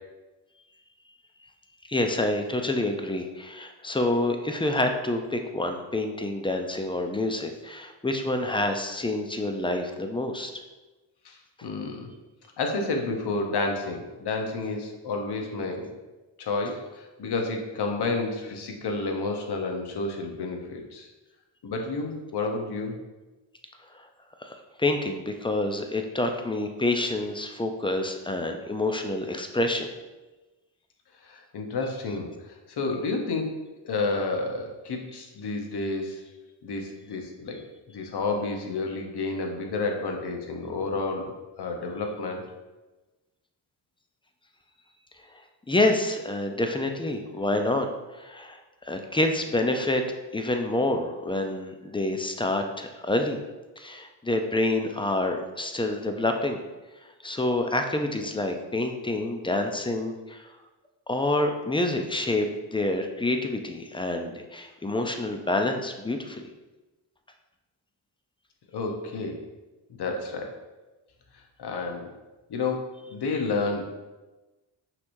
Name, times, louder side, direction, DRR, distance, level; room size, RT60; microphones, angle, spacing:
voice 1, 1.9-10.5 23.9-24.0 24.4-29.9 45.3-45.4 45.7-47.9 48.1-50.0 50.3-53.4 53.8-56.6 57.2-60.5 61.1-66.4, left 2 dB, 10° left, 5 dB, 0.4 m, -27 dB
voice 2, 11.2-12.1 12.6-15.9 16.4-21.1 21.6-23.0 31.2-33.6 33.8-36.2 36.6-37.6 37.9-42.4 68.7-69.4 70.0-70.6 71.6-72.1 72.5-73.9, left 3 dB, 55° left, 2 dB, 0.9 m, -30 dB
5.7 x 3.1 x 2.6 m, 1.1 s
cardioid pair, 60°, 48 cm